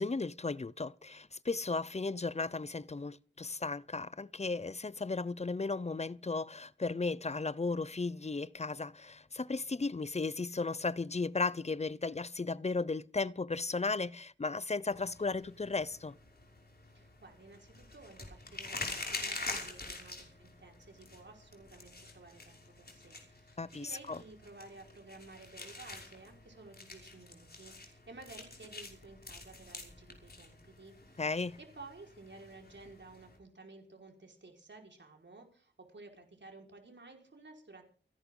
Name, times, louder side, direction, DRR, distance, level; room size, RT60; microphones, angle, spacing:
voice 1, 0.0-16.1 23.6-24.2 31.2-31.6, left 3 dB, 35° left, 0.7 m, -35 dB
sound 1, 14.9-33.4, left 2 dB, 55° left, 5.9 m, -46 dB
voice 2, 16.9-31.2 31.6-37.8, right 3 dB, 75° right, 5.1 m, -54 dB
29.0 x 11.0 x 3.9 m
wide cardioid pair, 70°, 19 cm